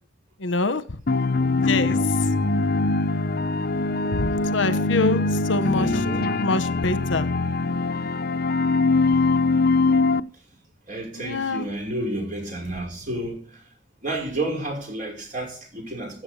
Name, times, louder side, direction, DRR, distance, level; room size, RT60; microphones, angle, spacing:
voice 1, 0.4-0.8 1.6-2.0 4.1-5.9 6.4-7.3 11.2-11.7, left 3 dB, 80° left, 1.2 m, -25 dB
sound 1, 1.1-10.2, left 3 dB, 50° left, 0.6 m, -22 dB
voice 2, 5.8-6.3 10.9-13.6 14.0-16.2, right 1 dB, 40° right, 5.5 m, -31 dB
16.0 x 7.7 x 6.8 m
head